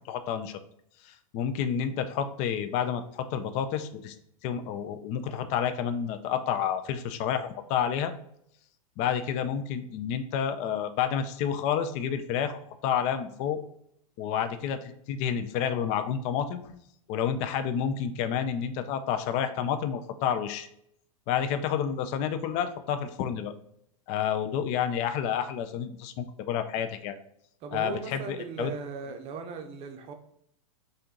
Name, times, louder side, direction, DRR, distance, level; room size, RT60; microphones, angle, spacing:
voice 1, 0.1-0.6 1.0-4.1 4.4-8.1 9.0-13.6 14.2-16.8 17.1-20.7 21.3-23.5 24.1-27.2 27.7-28.7, left 8 dB, 35° left, 9 dB, 0.4 m, -30 dB
voice 2, 27.6-30.1, right 5 dB, 35° right, 6 dB, 0.6 m, -38 dB
4.3 x 2.6 x 3.6 m, 0.71 s
hypercardioid pair, 125°, 19 cm